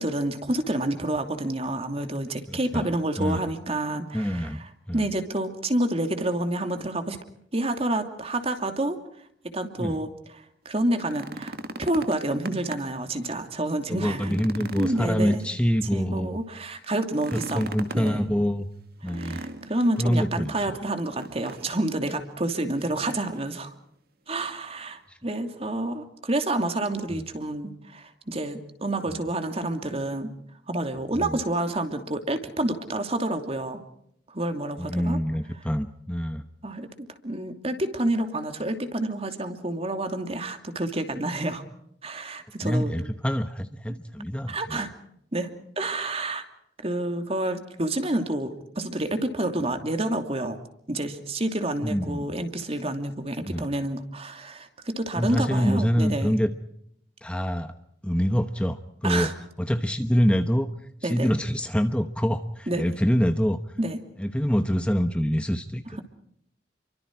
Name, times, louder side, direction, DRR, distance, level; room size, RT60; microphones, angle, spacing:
voice 1, 0.0-7.2 7.5-9.0 9.5-14.4 14.8-15.5 15.9-18.3 19.0-23.7 24.3-30.3 30.7-33.8 34.3-35.2 36.6-36.9 37.2-41.6 42.0-42.9 44.5-44.9 45.3-45.5 45.8-46.4 46.8-50.6 50.9-56.3 59.0-59.3 61.0-61.3 62.7-62.8 63.8-64.0, right 1 dB, 35° right, 7 dB, 2.8 m, -29 dB
voice 2, 2.5-2.9 3.2-3.4 4.1-4.6 4.9-5.1 9.8-10.0 13.9-16.4 17.3-18.7 19.0-19.4 20.0-20.8 25.1-25.2 27.1-27.3 29.1-29.2 31.2-31.4 34.8-36.4 42.6-44.9 51.8-52.4 53.4-53.6 55.2-56.5 57.2-57.7 58.0-59.3 59.6-60.7 61.0-63.6 64.2-65.8, equal, 5° left, 8 dB, 1.0 m, -25 dB
sound 1, 10.8-13.0 13.4-13.5 14.0-15.9 17.1-18.2 19.1-20.0 21.1-21.8 22.1-22.2 22.8-23.4 24.5-24.6, right 2 dB, 60° right, 2.2 m, -39 dB
29.5 x 24.0 x 4.7 m, 0.70 s
head